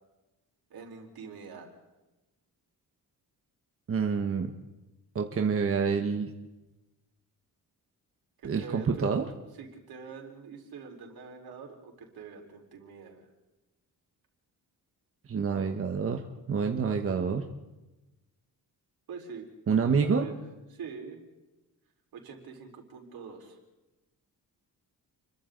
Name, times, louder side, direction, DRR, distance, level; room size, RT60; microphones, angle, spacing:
voice 1, 0.7-1.7 8.4-9.1 9.6-13.2 19.1-19.5 19.8-20.3 20.7-21.2 22.1-23.6, right 5 dB, 70° right, 1 dB, 4.5 m, -44 dB
voice 2, 3.9-4.5 5.1-6.3 8.4-9.3 15.3-17.5 19.7-20.3, right 5 dB, 35° right, 4 dB, 1.2 m, -27 dB
30.0 x 23.0 x 3.9 m, 1.0 s
wide cardioid pair, 170°, 38 cm